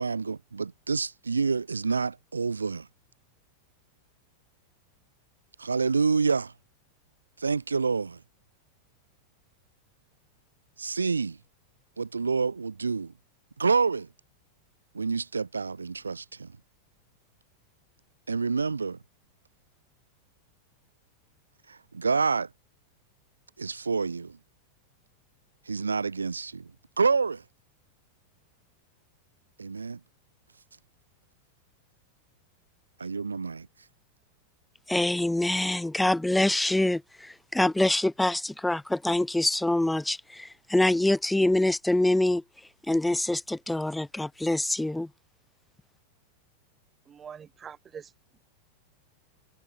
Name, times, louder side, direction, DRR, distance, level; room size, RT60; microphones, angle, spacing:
voice 1, 0.0-2.9 5.6-6.5 7.4-8.2 10.8-11.4 12.0-13.1 13.6-14.1 14.9-16.5 18.3-19.0 21.7-22.5 23.6-24.4 25.7-26.7 27.0-27.4 29.6-30.0 33.0-33.7, right 4 dB, 75° right, 1.1 m, -28 dB
voice 2, 34.9-42.4 42.9-45.1, left 1 dB, 5° left, 0.4 m, -25 dB
voice 3, 47.1-48.0, right 7 dB, 20° right, 2.2 m, -43 dB
figure-of-eight pair, 90°, 0 cm